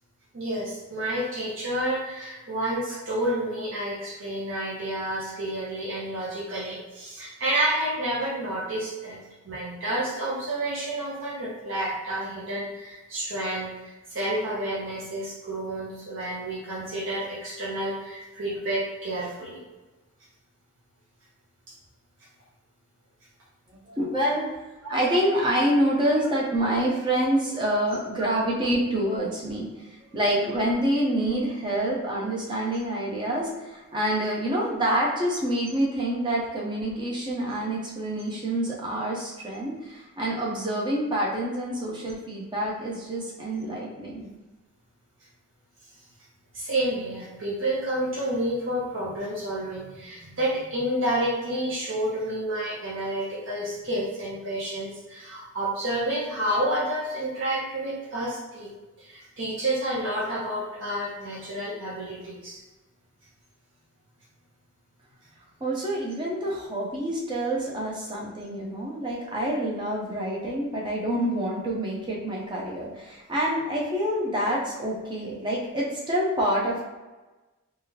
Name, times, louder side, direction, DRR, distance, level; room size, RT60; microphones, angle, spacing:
voice 1, 0.3-9.2 9.4-19.6 24.8-24.9 46.5-58.7 59.0-62.6, right 1 dB, 60° right, -6 dB, 0.7 m, -30 dB
voice 2, 23.9-24.6 24.9-44.3 65.6-76.8, right 1 dB, 20° right, -4 dB, 0.6 m, -27 dB
3.5 x 2.4 x 2.7 m, 1.2 s
head